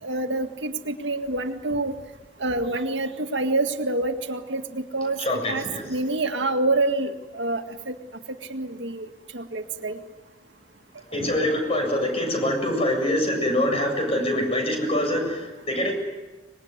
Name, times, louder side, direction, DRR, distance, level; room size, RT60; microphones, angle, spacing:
voice 1, 0.0-1.9 2.4-5.2 5.5-8.0 8.3-10.0, right 2 dB, 80° right, 5 dB, 2.0 m, -27 dB
voice 2, 5.2-5.8 11.1-15.9, left 1 dB, 35° left, 4 dB, 7.4 m, -24 dB
25.5 x 21.0 x 9.7 m, 1.2 s
head